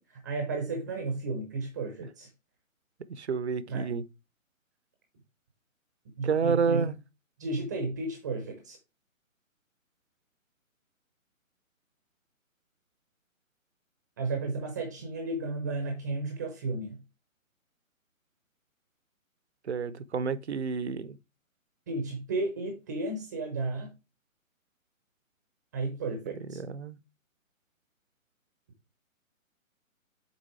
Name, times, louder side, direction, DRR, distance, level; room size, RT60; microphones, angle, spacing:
voice 1, 0.1-2.3 3.7-3.9 6.2-6.9 7.4-8.8 14.2-17.0 21.9-23.9 25.7-26.6, right 3 dB, 15° right, 0.7 m, -33 dB
voice 2, 3.1-4.0 6.2-7.0 19.6-21.2 26.5-27.0, right 5 dB, 50° right, 0.7 m, -29 dB
6.9 x 4.1 x 4.4 m
figure-of-eight pair, 140°, 41 cm